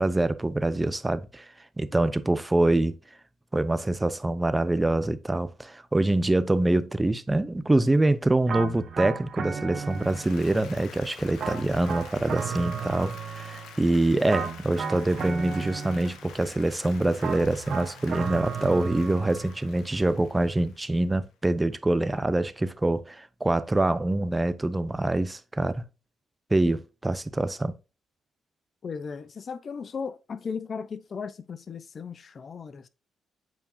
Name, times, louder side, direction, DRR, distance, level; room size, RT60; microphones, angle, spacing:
voice 1, 0.0-3.0 3.5-25.8 26.5-27.7, right 2 dB, 15° right, 0.6 m, -25 dB
sound 1, 8.5-10.6 11.4-13.8 14.3-16.4 17.2-19.6, right 6 dB, 55° right, 1.3 m, -34 dB
Applause, 9.8-21.1, left 7 dB, 80° left, 1.1 m, -48 dB
voice 2, 28.8-32.9, left 5 dB, 45° left, 0.6 m, -36 dB
8.3 x 4.6 x 2.7 m
cardioid pair, 90°, 0 cm